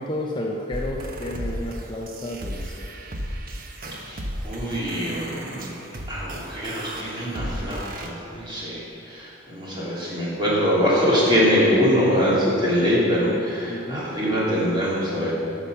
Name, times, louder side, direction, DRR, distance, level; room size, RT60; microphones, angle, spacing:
voice 1, 0.0-2.9 5.9-6.0 13.7-14.1, left 1 dB, 20° left, -2 dB, 0.8 m, -31 dB
sound 1, 0.7-8.1, equal, 45° right, 1.0 m, -34 dB
voice 2, 4.4-5.7 6.1-15.3, equal, 20° right, -7 dB, 3.3 m, -23 dB
13.0 x 7.2 x 6.7 m, 2.8 s
head